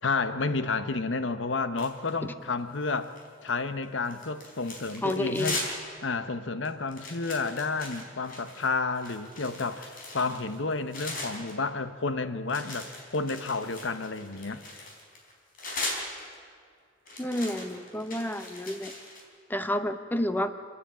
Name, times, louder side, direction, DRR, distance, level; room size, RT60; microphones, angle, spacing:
voice 1, 0.0-3.1 3.4-5.6 6.0-14.8, left 3 dB, 70° left, 11 dB, 1.0 m, -31 dB
sound 1, 1.8-2.3 2.7-3.5 3.8-5.9 6.2-6.3 6.6-11.5 12.5-16.5 17.1-19.2, left 2 dB, 45° left, 4.2 m, -39 dB
voice 2, 5.0-5.6 17.2-18.9 19.5-20.5, left 1 dB, 10° left, 9 dB, 0.9 m, -30 dB
30.0 x 10.0 x 8.7 m, 2.2 s
head